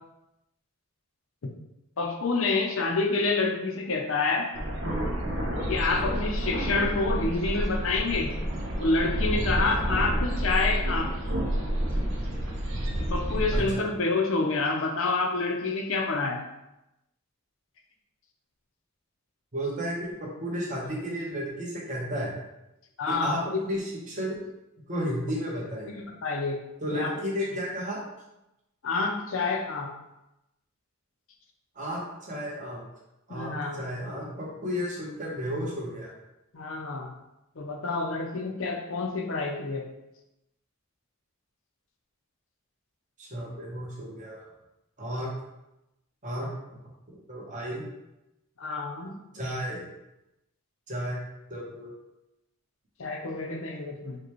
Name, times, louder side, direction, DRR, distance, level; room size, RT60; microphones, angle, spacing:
voice 1, 2.0-4.5 5.7-8.3 8.8-11.1 13.0-16.4 23.0-23.4 25.9-26.6 26.9-27.1 28.8-29.9 33.3-33.8 36.5-37.1 37.6-39.8 48.6-49.2 53.0-54.2, left 3 dB, 60° left, 3 dB, 0.6 m, -28 dB
sound 1, 4.5-13.7, equal, 60° right, 0.8 m, -29 dB
voice 2, 13.5-13.9 19.5-22.3 23.1-24.4 24.8-25.9 26.8-28.0 31.8-32.8 33.3-36.1 43.2-44.5 45.0-45.3 46.2-46.5 47.1-47.9 49.3-49.9 50.9-51.2 51.5-51.9, equal, 35° right, -4 dB, 1.0 m, -33 dB
4.9 x 2.3 x 3.0 m, 0.91 s
head